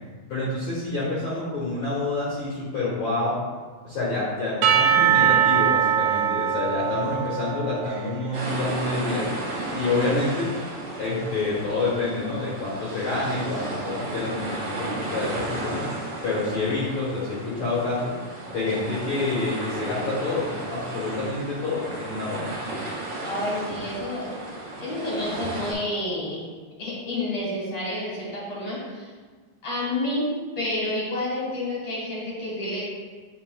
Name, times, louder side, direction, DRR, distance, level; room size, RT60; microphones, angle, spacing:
voice 1, 0.3-3.4 3.8-9.3 9.7-10.5 11.0-15.9 16.2-18.2 18.5-22.5, left 3 dB, 80° left, -8 dB, 1.6 m, -28 dB
Percussion / Church bell, 4.6-8.3, right 9 dB, 85° right, 2.7 m, -22 dB
sound 1, 8.3-25.7, right 2 dB, 55° right, 1.2 m, -34 dB
voice 2, 23.3-24.3 24.8-26.5 26.8-29.1 29.6-30.3 30.5-32.8, left 1 dB, 60° left, -7 dB, 1.7 m, -29 dB
9.7 x 5.7 x 2.3 m, 1.4 s
omnidirectional pair, 5.7 m